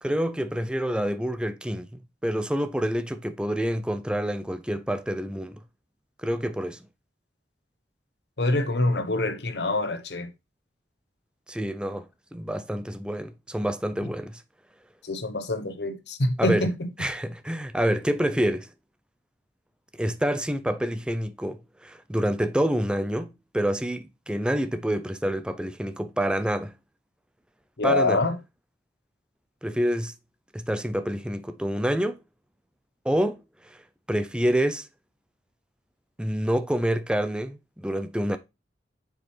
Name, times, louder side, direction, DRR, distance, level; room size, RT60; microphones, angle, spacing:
voice 1, 0.0-5.6 6.2-6.8 11.5-14.4 16.4-16.7 17.0-18.7 19.9-26.7 27.8-28.2 29.6-30.1 30.5-32.2 33.0-33.4 34.1-34.9 36.2-38.4, equal, 5° right, 0.5 m, -27 dB
voice 2, 8.4-10.3 15.0-16.9 27.8-28.4, left 2 dB, 70° left, 1.0 m, -25 dB
7.4 x 4.8 x 3.3 m
head